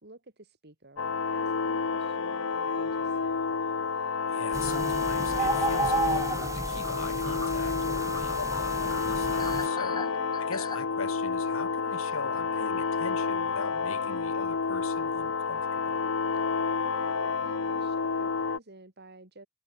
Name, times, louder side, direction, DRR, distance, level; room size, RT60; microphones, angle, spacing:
voice 1, 0.0-3.4 9.9-10.4 16.8-19.5, right 2 dB, 55° right, 4.2 m, -50 dB
sound 1, 1.0-18.6, left 5 dB, 75° left, 0.8 m, -29 dB
sound 2, 2.7-2.9 3.3-3.4 5.8-5.9 6.2-6.3 6.6-10.8, left 4 dB, 20° left, 1.0 m, -42 dB
voice 2, 4.3-10.1 10.4-16.0, left 4 dB, 90° left, 2.4 m, -41 dB
sound 3, 4.5-9.7, right 3 dB, 15° right, 0.5 m, -33 dB
head